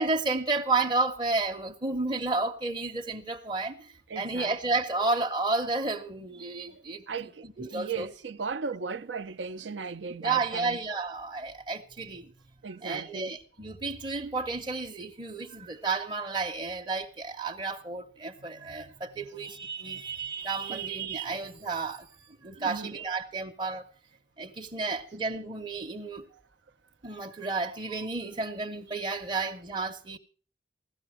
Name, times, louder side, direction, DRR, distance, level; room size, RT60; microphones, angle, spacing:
voice 1, 0.0-8.1 10.2-12.3 12.8-22.1 22.4-23.9 24.4-26.2 27.0-30.2, right 3 dB, 25° right, 0.7 m, -32 dB
voice 2, 4.1-4.5 6.7-6.8 7.1-10.8 12.6-13.3 18.4-18.8 19.2-19.3 20.7-20.8 22.6-23.1, right 5 dB, 85° right, 0.6 m, -37 dB
16.0 x 13.0 x 4.9 m
head